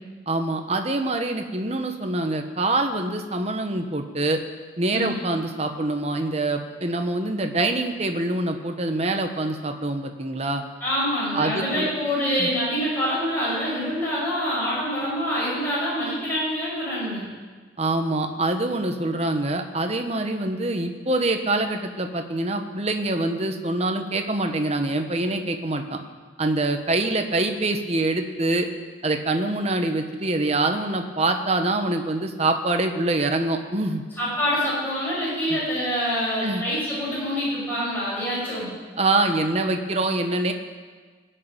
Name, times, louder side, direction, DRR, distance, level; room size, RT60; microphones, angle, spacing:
voice 1, 0.3-4.4 4.8-10.6 11.3-11.9 12.4-12.5 17.8-26.0 26.4-28.7 29.0-34.0 35.5-35.6 36.4-36.6 39.0-40.5, right 2 dB, 35° right, 5 dB, 1.2 m, -25 dB
voice 2, 10.8-17.3 34.2-38.7, equal, 10° left, -8 dB, 6.5 m, -26 dB
20.0 x 6.7 x 8.9 m, 1.4 s
head